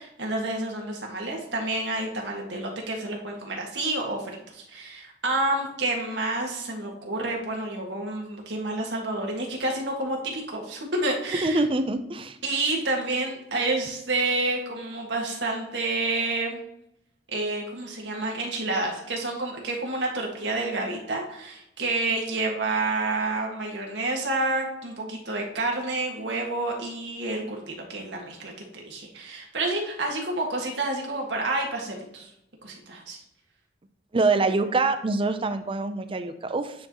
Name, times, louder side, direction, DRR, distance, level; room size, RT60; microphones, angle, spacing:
voice 1, 0.0-11.6 12.4-16.6 17.3-32.3 32.6-33.2, right 2 dB, 85° right, 0 dB, 1.8 m, -29 dB
voice 2, 11.4-12.4 34.1-36.7, right 3 dB, 30° right, 9 dB, 0.5 m, -25 dB
9.4 x 4.5 x 3.0 m, 0.83 s
head